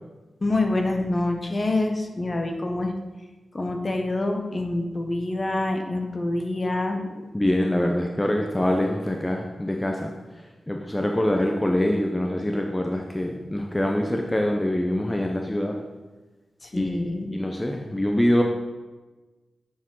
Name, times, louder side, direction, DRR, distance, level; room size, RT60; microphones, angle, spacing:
voice 1, 0.4-2.9 3.5-7.2 16.6-17.3, left 2 dB, 40° left, 3 dB, 1.1 m, -26 dB
voice 2, 7.3-10.1 10.7-15.8 16.7-17.0 17.3-18.4, left 1 dB, 15° left, 2 dB, 0.8 m, -24 dB
9.1 x 4.5 x 3.9 m, 1.2 s
cardioid pair, 40°, 0 cm